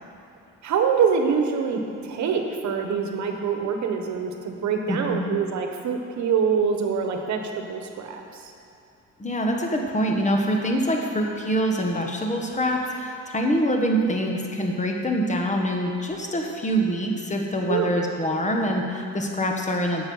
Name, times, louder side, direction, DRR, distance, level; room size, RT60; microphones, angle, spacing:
voice 1, 0.6-8.5 17.7-17.9, right 6 dB, 70° right, 4 dB, 1.1 m, -25 dB
voice 2, 4.9-5.3 9.2-20.1, equal, 25° left, 1 dB, 1.3 m, -25 dB
8.9 x 6.9 x 5.5 m, 2.7 s
cardioid pair, 90°, 30 cm